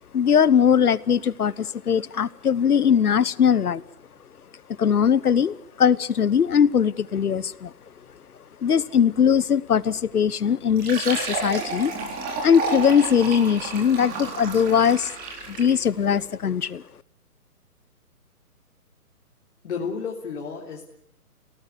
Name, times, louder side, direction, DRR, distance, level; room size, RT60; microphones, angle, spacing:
voice 1, 0.1-3.8 4.8-7.7 8.6-11.9 12.4-15.1 15.5-16.8, left 7 dB, 75° left, 21 dB, 1.1 m, -20 dB
Fill (with liquid), 10.7-15.8, right 3 dB, 20° right, 4.0 m, -31 dB
voice 2, 19.6-20.9, left 5 dB, 50° left, -1 dB, 3.6 m, -31 dB
27.5 x 18.0 x 8.4 m, 0.69 s
figure-of-eight pair, 145°, 46 cm